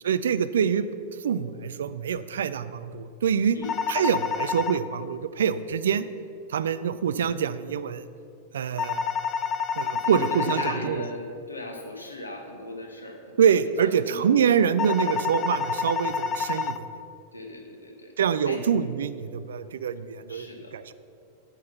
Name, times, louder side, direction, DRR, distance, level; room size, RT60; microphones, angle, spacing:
voice 1, 0.0-0.9 1.2-3.6 3.9-6.1 6.5-8.0 8.5-9.0 9.8-11.1 13.4-16.9 18.2-20.9, right 7 dB, 65° right, 14 dB, 0.4 m, -25 dB
sound 1, 3.6-4.8 8.8-10.8 14.8-16.8, left 6 dB, 30° left, 0.5 m, -28 dB
voice 2, 10.0-13.3 13.6-14.2 15.0-15.2 17.3-18.1 18.4-18.6 20.3-20.8, left 2 dB, 80° left, 3 dB, 1.2 m, -38 dB
9.0 x 5.6 x 6.9 m, 2.6 s
figure-of-eight pair, 90°, 0 cm